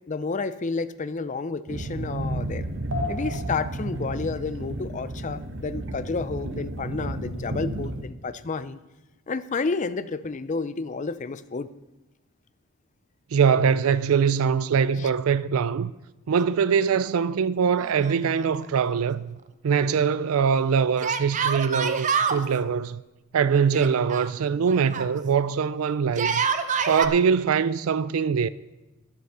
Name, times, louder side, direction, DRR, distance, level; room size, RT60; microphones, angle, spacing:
voice 1, 0.1-2.6 3.1-8.8 9.3-11.7 15.0-15.1, left 4 dB, 35° left, 0.5 m, -30 dB
sound 1, 1.7-8.0, right 1 dB, 60° right, 1.1 m, -32 dB
voice 2, 13.3-15.9 16.3-19.3 19.6-23.0 23.3-26.5 26.9-28.5, right 6 dB, 80° right, 0.4 m, -23 dB
Yell, 17.8-18.6 18.9-19.0 21.0-22.4 23.7-25.1 26.1-27.1, right 6 dB, 35° right, 0.6 m, -27 dB
11.0 x 8.0 x 6.7 m
head